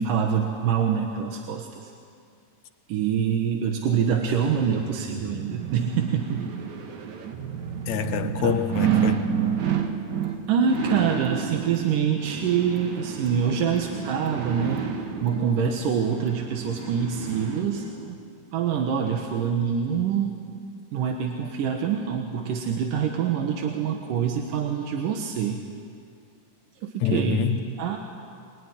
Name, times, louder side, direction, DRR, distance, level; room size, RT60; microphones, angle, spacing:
voice 1, 0.0-1.9 2.9-6.5 8.2-8.5 10.5-14.9 15.2-17.9 18.5-20.3 20.9-25.6 26.8-27.5 27.8-28.0, right 7 dB, 90° right, 3.0 m, -25 dB
sound 1, 4.3-18.2 18.6-18.7, right 8 dB, 65° right, 2.9 m, -30 dB
voice 2, 7.9-9.3 27.0-27.7, left 7 dB, 70° left, 2.3 m, -26 dB
sound 2, 10.2-10.4 10.7-11.4 11.7-11.9 12.2-12.4 12.7-13.4 13.7-13.9 14.2-14.4 14.7-15.4 15.7-15.9 16.2-16.4 16.7-17.4 17.7-17.9, left 3 dB, 10° right, 3.3 m, -48 dB
23.0 x 22.5 x 9.9 m
omnidirectional pair, 3.6 m